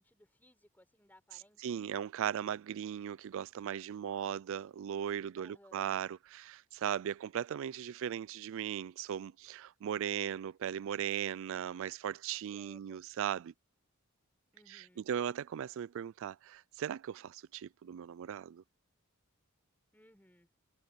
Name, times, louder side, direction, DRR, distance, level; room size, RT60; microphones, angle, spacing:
voice 1, 0.0-1.8 5.4-6.0 12.5-13.1 14.5-15.0 19.9-20.5, left 1 dB, 10° left, 6.1 m, -63 dB
voice 2, 1.6-13.5 14.7-18.6, right 9 dB, 60° right, 0.3 m, -38 dB
head